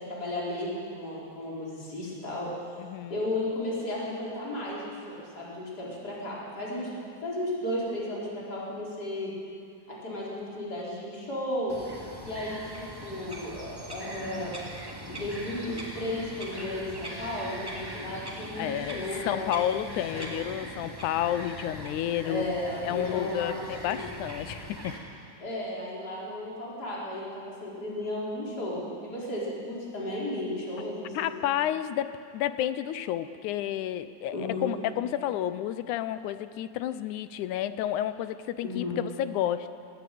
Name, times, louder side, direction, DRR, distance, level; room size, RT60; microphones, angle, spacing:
voice 1, 0.0-2.5 3.1-6.9 7.2-9.3 9.9-11.8 12.2-14.5 15.1-19.8 20.2-20.4 22.2-24.1 25.4-31.4 34.3-34.7 38.6-39.0, left 1 dB, 30° left, -6 dB, 5.1 m, -34 dB
voice 2, 2.8-3.2 18.6-22.5 22.8-25.0 31.1-39.7, left 11 dB, 90° left, 12 dB, 2.2 m, -31 dB
Bird vocalization bird call bird song, 11.7-25.0, right 1 dB, 10° right, 2.5 m, -41 dB
20.5 x 15.0 x 9.3 m, 2.4 s
omnidirectional pair, 3.4 m